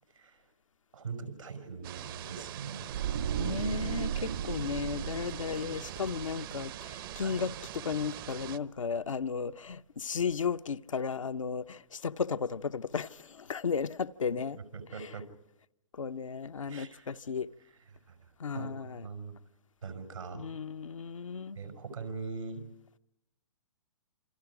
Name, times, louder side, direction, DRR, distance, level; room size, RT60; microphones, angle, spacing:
voice 1, 0.1-0.5 0.9-3.0 7.2-7.5 14.5-15.2 16.7-17.2 17.6-19.4 19.8-20.5 21.5-22.7, right 5 dB, 85° right, 5.9 m, -42 dB
sound 1, 1.8-8.6, right 13 dB, 45° right, 0.9 m, -43 dB
sound 2, 2.9-8.0 8.3-8.5, right 8 dB, 65° right, 2.1 m, -36 dB
voice 2, 3.4-7.5 7.8-14.6 15.9-17.5 18.4-19.1 20.3-21.6, left 6 dB, 85° left, 0.8 m, -34 dB
28.0 x 26.5 x 4.9 m
hypercardioid pair, 130°, 16 cm